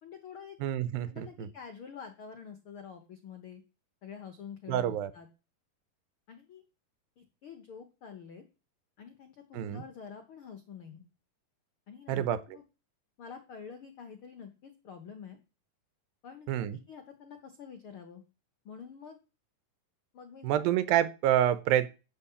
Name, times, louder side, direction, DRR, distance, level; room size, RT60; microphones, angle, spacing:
voice 1, 0.0-0.6 1.1-3.6 4.0-5.3 6.3-6.6 7.2-8.4 9.0-11.0 11.9-12.6 13.2-15.4 16.2-18.2 18.6-19.2 20.1-20.7, left 7 dB, 90° left, 1.2 m, -47 dB
voice 2, 0.6-1.5 4.7-5.1 9.5-9.8 12.1-12.4 16.5-16.8 20.4-21.9, right 11 dB, 80° right, 2.5 m, -28 dB
8.5 x 7.8 x 7.0 m
omnidirectional pair, 4.2 m